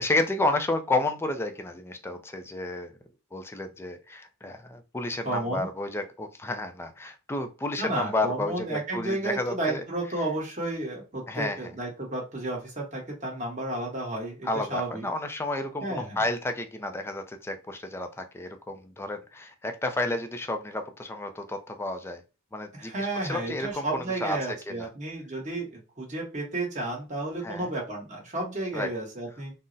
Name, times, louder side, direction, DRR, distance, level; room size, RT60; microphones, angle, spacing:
voice 1, 0.0-2.9 3.3-9.8 11.3-11.7 14.4-22.2 22.5-24.9 27.4-27.7 28.7-28.9, left 2 dB, 10° left, 7 dB, 0.3 m, -31 dB
voice 2, 5.2-5.7 7.8-15.0 15.8-16.2 22.7-29.5, right 2 dB, 35° right, -1 dB, 1.1 m, -32 dB
3.8 x 2.0 x 2.5 m, 0.31 s
head